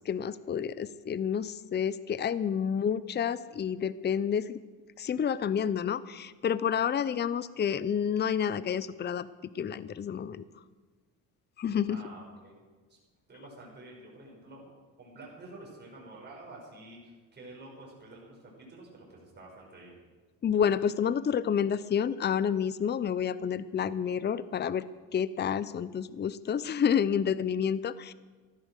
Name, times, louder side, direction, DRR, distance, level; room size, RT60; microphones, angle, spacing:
voice 1, 0.0-4.6 5.0-9.3 9.5-10.4 11.6-12.0 20.4-24.9 25.1-28.1, left 8 dB, 30° left, 16 dB, 0.6 m, -29 dB
voice 2, 11.9-12.6 12.9-13.0 13.3-14.7 15.0-20.0, right 2 dB, 30° right, -3 dB, 6.1 m, -49 dB
14.0 x 13.5 x 6.5 m, 1.4 s
cardioid pair, 110°, 35 cm